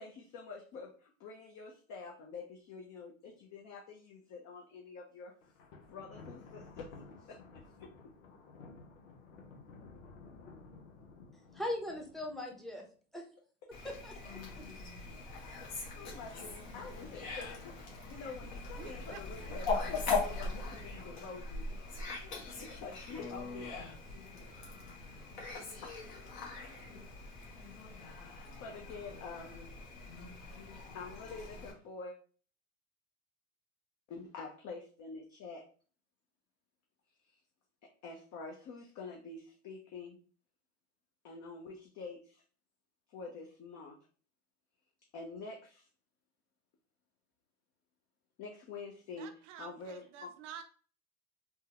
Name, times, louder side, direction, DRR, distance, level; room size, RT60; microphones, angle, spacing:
voice 1, 0.0-5.3 5.9-6.9 7.2-7.9 15.1-21.6 22.6-23.9 25.5-25.9 27.9-29.5 30.9-32.2 34.1-35.6 37.2-37.3 37.8-40.2 41.2-42.4 43.1-44.0 45.1-45.9 48.4-50.3, left 4 dB, 45° left, 0.7 m, -47 dB
Thunder, 5.4-12.7, left 4 dB, 90° left, 0.8 m, -54 dB
voice 2, 11.5-12.8 13.1-13.2 13.8-14.6, left 1 dB, ahead, 0.7 m, -40 dB
Fowl, 13.7-31.7, left 4 dB, 65° left, 1.3 m, -41 dB
voice 3, 18.8-19.2 49.2-50.6, right 9 dB, 70° right, 0.7 m, -49 dB
3.5 x 2.2 x 2.9 m
hypercardioid pair, 90°, 38 cm